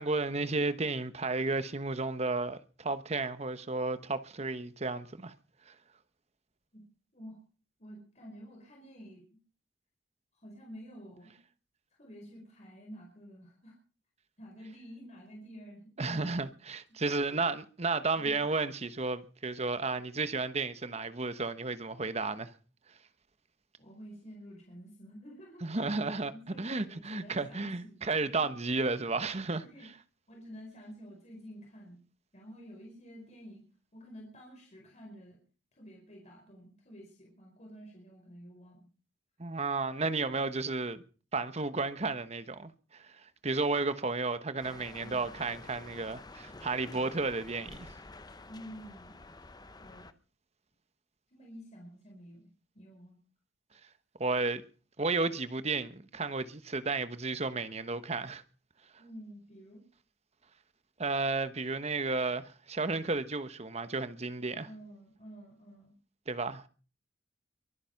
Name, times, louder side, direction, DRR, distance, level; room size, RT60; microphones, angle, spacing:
voice 1, 0.0-5.3 5.7-5.8 16.0-22.5 25.6-26.3 26.6-29.6 39.4-41.0 41.3-47.9 54.2-54.6 55.0-58.4 61.0-64.7 66.3-66.7, right 3 dB, 35° right, 1.1 m, -33 dB
voice 2, 7.8-9.4 10.3-11.4 11.9-13.7 14.4-16.4 18.2-18.4 23.8-25.7 26.3-28.0 28.3-28.4 29.7-29.9 30.3-32.0 32.3-33.6 33.9-35.4 35.7-38.9 44.9-45.3 48.5-49.1 49.8-50.1 51.3-52.5 52.7-53.2 59.0-59.8 64.6-66.0, equal, 40° left, 4.8 m, -50 dB
sound 1, 44.6-50.1, left 2 dB, 20° left, 0.8 m, -50 dB
23.0 x 9.9 x 5.8 m
head